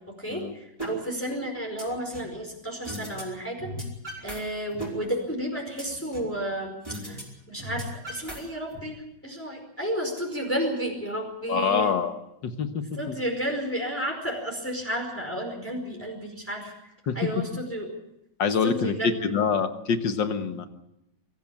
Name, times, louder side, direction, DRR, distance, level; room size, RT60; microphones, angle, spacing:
voice 1, 0.2-3.7 4.2-7.2 7.5-11.9 13.0-16.7 17.1-17.9 18.6-19.1, equal, 5° left, 1 dB, 4.8 m, -32 dB
sound 1, 0.8-0.9 1.3-2.3 2.8-3.2 3.5-4.4 4.7-6.4 6.8-7.2 7.5-8.8, right 1 dB, 15° right, 5.1 m, -37 dB
voice 2, 11.5-12.2 12.4-13.2 17.1-17.4 18.4-20.7, left 6 dB, 75° left, 8 dB, 2.1 m, -26 dB
23.5 x 15.0 x 8.6 m, 0.84 s
omnidirectional pair, 2.0 m